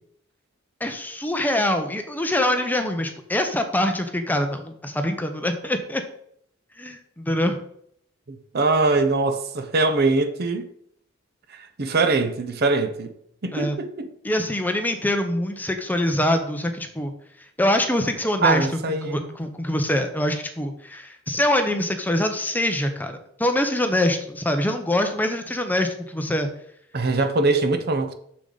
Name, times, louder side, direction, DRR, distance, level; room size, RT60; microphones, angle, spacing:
voice 1, 0.8-6.0 6.8-7.6 13.5-13.8 14.2-17.1 17.6-18.7 19.0-26.5, left 1 dB, 10° left, 0.7 m, -24 dB
voice 2, 8.3-10.7 11.5-13.1 13.4-14.1 18.4-19.3 26.9-28.1, right 3 dB, 50° right, 0.7 m, -22 dB
6.8 x 6.5 x 3.9 m
head